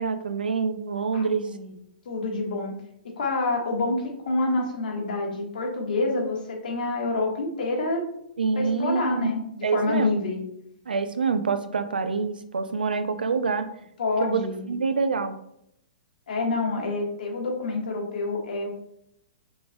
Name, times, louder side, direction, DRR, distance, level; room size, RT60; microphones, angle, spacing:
voice 1, 0.0-1.5 8.4-9.3 9.6-10.2 10.9-13.7 14.2-15.4, right 5 dB, 85° right, 11 dB, 0.5 m, -26 dB
voice 2, 1.1-1.7 2.0-2.7 3.2-8.0 8.5-10.4 14.0-14.6 16.3-18.7, left 2 dB, 65° left, 0 dB, 1.4 m, -27 dB
5.0 x 3.9 x 2.3 m, 0.76 s
hypercardioid pair, 125°, 5 cm